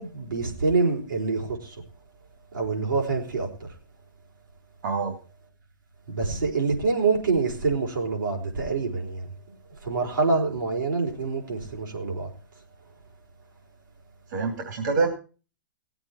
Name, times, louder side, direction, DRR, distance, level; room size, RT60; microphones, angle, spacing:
voice 1, 0.0-1.8 2.5-3.7 6.1-12.3, right 4 dB, 85° right, 4.7 m, -26 dB
voice 2, 4.8-5.1 14.3-15.1, right 4 dB, 65° right, 3.1 m, -25 dB
18.0 x 8.0 x 4.5 m
hypercardioid pair, 120°, 11 cm